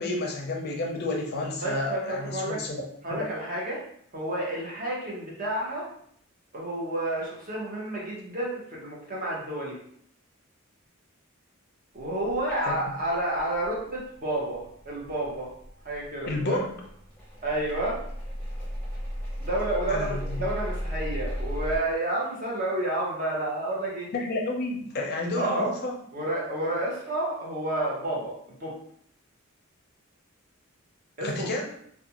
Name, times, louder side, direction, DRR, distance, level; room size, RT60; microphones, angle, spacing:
voice 1, 0.0-2.8 3.1-3.3 12.5-12.7 16.2-16.7 19.9-20.4 24.1-25.9 31.2-31.7, left 2 dB, 50° left, 1 dB, 0.4 m, -30 dB
voice 2, 1.6-2.6 3.0-3.8 4.1-5.9 6.5-9.8 11.9-15.5 15.8-16.6 17.4-18.0 19.4-24.1 25.4-25.7 26.1-28.3 28.6-28.8 31.2-31.5, right 1 dB, 40° right, -4 dB, 0.8 m, -30 dB
sound 1, 12.0-21.8, equal, 5° left, 0.8 m, -36 dB
2.4 x 2.2 x 2.8 m, 0.67 s
head